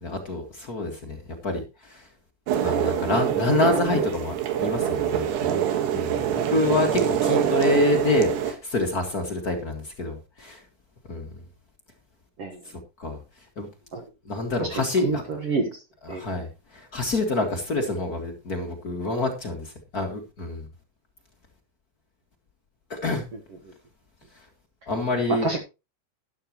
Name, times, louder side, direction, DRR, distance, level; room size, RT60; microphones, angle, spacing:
voice 1, 0.0-2.1 2.6-5.6 5.9-10.6 11.1-11.3 13.0-13.2 13.6-13.7 14.2-15.2 16.0-20.7 22.9-23.2 24.9-25.5, left 2 dB, 45° left, 1.2 m, -27 dB
sound 1, 2.5-8.5, right 10 dB, 80° right, 3.6 m, -25 dB
voice 2, 15.0-15.8 16.1-16.2 25.3-25.6, right 3 dB, 65° right, 1.5 m, -27 dB
12.5 x 11.5 x 3.0 m
omnidirectional pair, 4.8 m